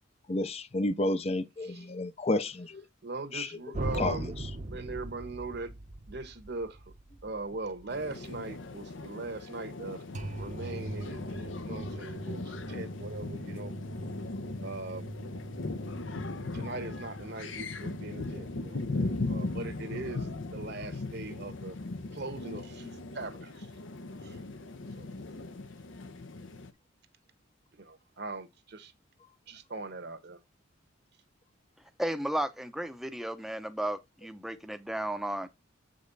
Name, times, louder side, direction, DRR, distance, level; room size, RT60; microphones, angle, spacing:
voice 1, 0.3-2.8 3.3-3.5 3.9-4.3, left 2 dB, 30° left, 0.7 m, -31 dB
voice 2, 3.0-4.3 4.7-5.7 6.1-6.8 7.2-10.0 10.4-13.7 14.6-15.1 16.5-21.8 22.1-23.7 24.2-24.4 25.0-25.1 27.8-28.9 29.5-30.4, right 3 dB, 55° right, 1.2 m, -40 dB
sound 1, 3.7-8.8 10.1-20.1, right 2 dB, 40° right, 0.8 m, -42 dB
sound 2, 7.9-26.7, left 2 dB, 65° left, 0.8 m, -38 dB
voice 3, 32.0-35.5, right 1 dB, ahead, 0.7 m, -34 dB
7.9 x 5.3 x 4.0 m
head